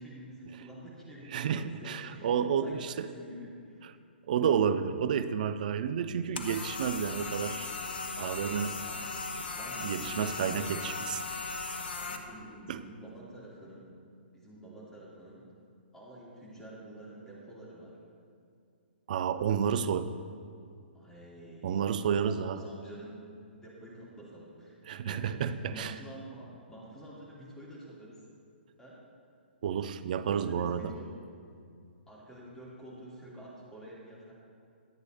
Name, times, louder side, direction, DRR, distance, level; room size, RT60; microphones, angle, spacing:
voice 1, 0.0-3.9 8.4-9.0 9.5-10.2 12.0-13.9 14.3-15.4 15.9-18.0 20.9-23.2 23.5-24.8 25.0-28.2 28.8-29.0 30.2-31.1 32.1-34.3, right 1 dB, 5° left, -6 dB, 3.0 m, -48 dB
voice 2, 1.3-3.1 3.8-3.9 4.3-7.7 8.2-8.8 9.8-11.2 12.7-12.8 19.1-20.1 21.6-22.6 24.9-25.9 29.6-30.9, right 7 dB, 45° right, 11 dB, 0.5 m, -30 dB
sound 1, 6.4-12.2, left 4 dB, 60° left, 1.0 m, -37 dB
21.5 x 8.0 x 2.8 m, 2.4 s
figure-of-eight pair, 125°, 6 cm